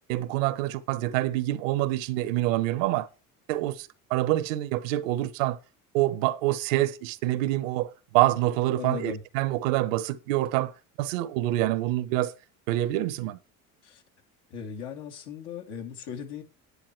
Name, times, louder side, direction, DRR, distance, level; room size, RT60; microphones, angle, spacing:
voice 1, 0.1-3.1 3.5-5.6 5.9-10.7 11.0-12.3 12.7-13.4, right 16 dB, 85° right, 0.9 m, -26 dB
voice 2, 8.8-9.2 13.8-14.0 14.5-16.4, left 7 dB, 75° left, 2.5 m, -37 dB
10.0 x 9.5 x 4.4 m
supercardioid pair, 75°, 38 cm